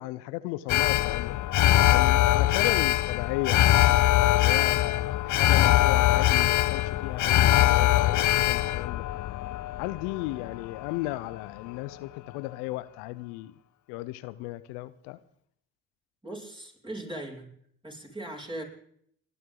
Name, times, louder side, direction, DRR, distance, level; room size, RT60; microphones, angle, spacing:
voice 1, 0.0-1.4 1.9-3.7 4.3-9.0 9.8-13.6 13.9-15.2, left 18 dB, 80° left, 0.8 m, -35 dB
Alarm, 0.7-11.0 11.3-11.4, left 14 dB, 50° left, 0.5 m, -22 dB
voice 2, 16.2-17.5 17.8-18.6, right 1 dB, 10° right, 6.6 m, -39 dB
29.5 x 11.5 x 3.9 m
hypercardioid pair, 50°, 40 cm